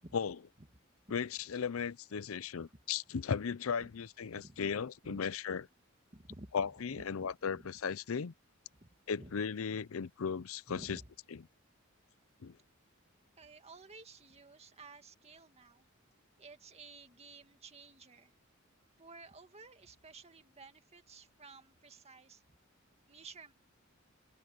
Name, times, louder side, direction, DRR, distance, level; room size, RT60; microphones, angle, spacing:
voice 1, 1.1-5.7 6.5-8.3 9.1-11.0 12.4-12.6, left 6 dB, 90° left, 0.6 m, -36 dB
voice 2, 6.1-7.7 8.8-9.3 10.7-11.1 13.4-15.9 16.4-18.3 19.0-22.4 23.1-23.5, right 3 dB, 30° right, 2.1 m, -54 dB
head